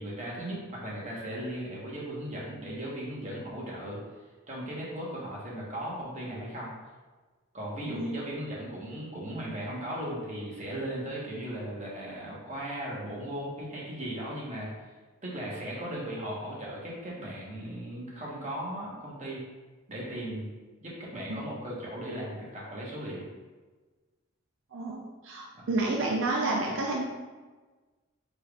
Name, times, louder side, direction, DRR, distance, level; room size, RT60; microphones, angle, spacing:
voice 1, 0.0-4.0 4.5-6.7 7.5-14.7 15.2-19.4 19.9-20.5 20.8-23.2 25.5-25.7, right 1 dB, 35° right, -5 dB, 1.2 m, -37 dB
voice 2, 24.7-27.0, right 2 dB, 70° right, -1 dB, 0.5 m, -30 dB
4.9 x 4.3 x 2.4 m, 1.3 s
head